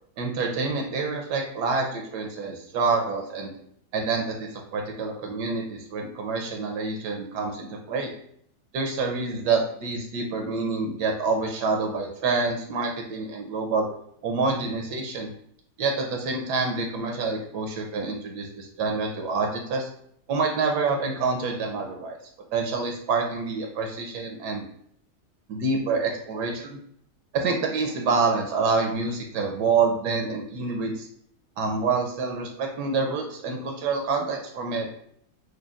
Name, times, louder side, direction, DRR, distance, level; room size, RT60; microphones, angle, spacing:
voice 1, 0.2-3.5 3.9-8.1 8.7-13.9 14.2-15.3 15.8-19.9 20.3-22.2 22.5-24.6 25.5-26.8 27.3-31.1 31.6-35.0, right 4 dB, 80° right, 2 dB, 1.2 m, -27 dB
6.4 x 2.2 x 2.3 m, 0.66 s
omnidirectional pair, 1.8 m